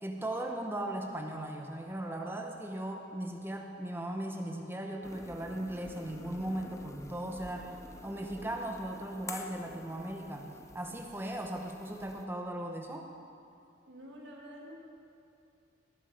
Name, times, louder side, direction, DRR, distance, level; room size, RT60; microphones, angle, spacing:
voice 1, 0.0-10.5 10.7-13.1, right 1 dB, 10° right, 2 dB, 0.9 m, -38 dB
sound 1, 5.0-12.2, left 2 dB, 15° left, 0.6 m, -49 dB
voice 2, 13.9-14.8, equal, 70° right, -1 dB, 1.7 m, -48 dB
18.5 x 7.4 x 5.3 m, 2.6 s
head